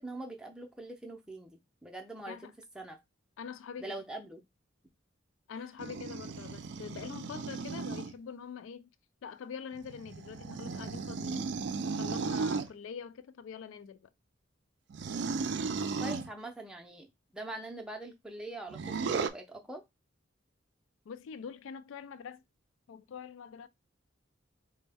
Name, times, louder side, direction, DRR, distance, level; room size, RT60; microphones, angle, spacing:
voice 1, 0.0-3.0 3.8-4.5 16.0-19.8, right 2 dB, 5° right, 0.5 m, -43 dB
voice 2, 3.4-4.0 5.5-8.9 9.2-11.5 12.0-14.1 21.1-22.4 22.9-23.7, left 6 dB, 80° left, 0.3 m, -44 dB
sound 1, 5.8-8.1 9.7-12.7 14.9-16.3 18.7-19.3, right 4 dB, 60° right, 0.3 m, -35 dB
4.1 x 2.1 x 3.4 m
head